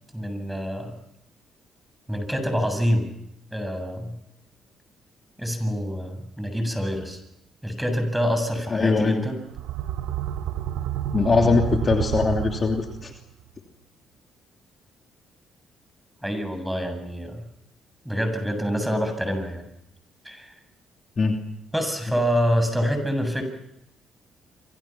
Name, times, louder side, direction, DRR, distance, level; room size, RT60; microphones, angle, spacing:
voice 1, 0.1-1.0 2.1-3.1 3.5-4.2 5.4-7.2 7.6-9.4 11.2-11.6 16.2-17.4 18.0-19.7 20.2-20.5 21.7-23.4, equal, 5° right, 7 dB, 7.5 m, -26 dB
voice 2, 8.7-9.2 11.1-13.1 21.2-21.4, left 4 dB, 40° left, 3 dB, 2.9 m, -21 dB
sound 1, 9.4-13.2, right 11 dB, 85° right, 1.4 m, -29 dB
28.5 x 26.0 x 6.1 m, 0.80 s
supercardioid pair, 70°, 0 cm